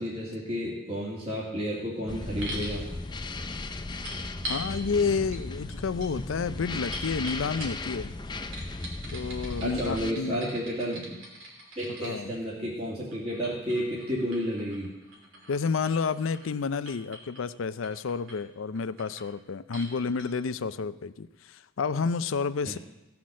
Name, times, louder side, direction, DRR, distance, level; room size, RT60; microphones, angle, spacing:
voice 1, 0.0-2.8 9.6-11.1 11.8-14.9 22.6-22.8, equal, 30° right, -6 dB, 2.3 m, -31 dB
sound 1, 2.1-10.1, left 2 dB, 20° left, 0.4 m, -36 dB
sound 2, 2.4-2.8 4.0-4.7 5.3-5.4 5.7-8.0 8.5-12.1 13.1-16.6 16.9-17.4 17.8-18.4 18.8-19.3 19.7-19.9 20.2-20.3, equal, 75° right, 3.0 m, -42 dB
voice 2, 4.5-8.1 9.1-10.4 12.0-12.4 15.5-22.8, left 5 dB, 85° left, 14 dB, 0.5 m, -30 dB
16.5 x 5.9 x 6.3 m, 1.1 s
head